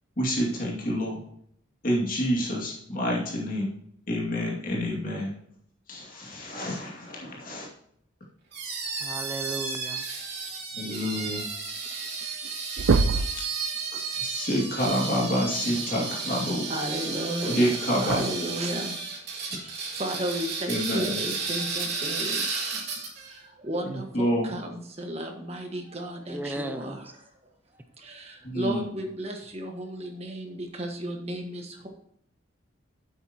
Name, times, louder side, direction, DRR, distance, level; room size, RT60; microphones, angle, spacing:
voice 1, 0.2-1.2 1.8-3.7 4.1-5.3 5.9-7.7 10.8-11.4 14.2-16.7 17.5-18.2 20.7-21.2 23.8-24.5 28.4-28.8, equal, 45° left, -3 dB, 2.4 m, -28 dB
sound 1, 8.5-23.3, right 4 dB, 55° right, 3.2 m, -33 dB
voice 2, 9.0-10.1 26.3-27.0, right 1 dB, 10° right, 7 dB, 0.5 m, -35 dB
sound 2, 11.9-12.0 12.2-12.5 12.8-13.4 15.1-15.2 17.1-17.2 18.1-18.2, right 4 dB, 80° right, 0.4 m, -23 dB
voice 3, 16.7-19.1 19.4-27.1 28.0-31.9, right 1 dB, 30° right, 3 dB, 1.5 m, -34 dB
11.5 x 8.1 x 3.0 m, 0.69 s
head